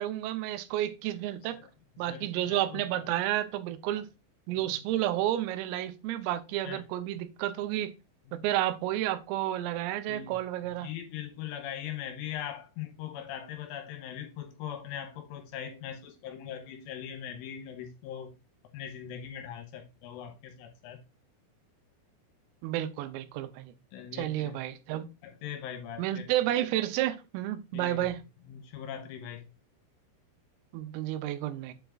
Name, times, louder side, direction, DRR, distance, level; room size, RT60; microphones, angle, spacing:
voice 1, 0.0-1.6 2.0-4.1 4.5-7.9 8.3-10.9 22.6-23.7 24.1-25.1 26.0-28.2 30.7-31.7, right 13 dB, 90° right, 3.4 m, -31 dB
voice 2, 2.0-3.0 4.5-4.8 6.6-6.8 8.3-8.5 10.1-10.4 10.8-18.3 18.7-21.0 23.9-24.6 25.2-26.2 27.7-28.0 28.5-29.5, left 9 dB, 80° left, 3.2 m, -41 dB
7.7 x 6.9 x 2.4 m
omnidirectional pair, 5.9 m